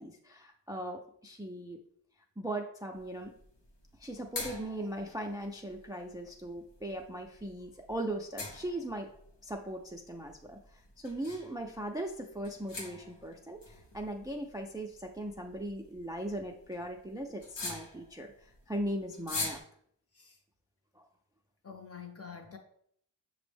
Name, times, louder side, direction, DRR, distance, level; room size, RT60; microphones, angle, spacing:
voice 1, 0.0-1.8 2.4-3.3 4.0-9.1 9.4-10.6 11.0-18.3 18.7-19.6 21.0-21.1, right 1 dB, 10° right, 2 dB, 0.3 m, -39 dB
sound 1, 3.0-19.6, left 3 dB, 85° left, 0.7 m, -45 dB
voice 2, 21.6-22.6, left 6 dB, 35° left, 4 dB, 0.6 m, -47 dB
5.9 x 2.0 x 3.3 m, 0.66 s
wide cardioid pair, 80°, 41 cm